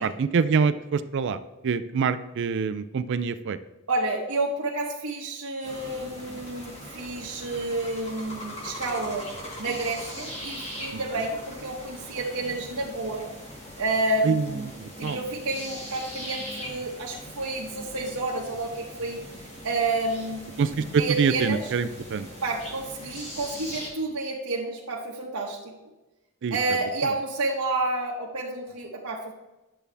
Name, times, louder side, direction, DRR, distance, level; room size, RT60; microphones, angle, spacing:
voice 1, 0.0-3.6 10.9-11.0 14.2-14.4 14.8-15.2 20.6-22.3 26.4-26.6 27.0-27.1, right 5 dB, 55° right, 13 dB, 0.4 m, -25 dB
voice 2, 3.9-9.3 9.6-13.3 13.8-14.7 15.0-19.2 19.6-20.4 20.8-21.7 22.4-25.7 26.5-29.3, right 2 dB, 85° right, -3 dB, 1.2 m, -30 dB
sound 1, 5.6-23.9, equal, 30° left, 2.0 m, -40 dB
10.5 x 6.9 x 3.4 m, 1.0 s
head